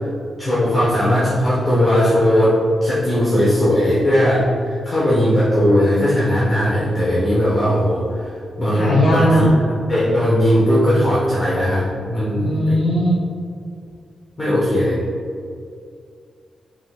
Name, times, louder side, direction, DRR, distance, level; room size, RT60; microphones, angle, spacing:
voice 1, 0.4-8.3 8.6-9.5 9.9-12.8 14.4-15.0, equal, 20° left, -9 dB, 1.0 m, -18 dB
voice 2, 8.7-9.5 12.4-13.2, equal, 55° left, -6 dB, 1.2 m, -17 dB
5.4 x 3.8 x 2.4 m, 2.4 s
wide cardioid pair, 125°, 0 cm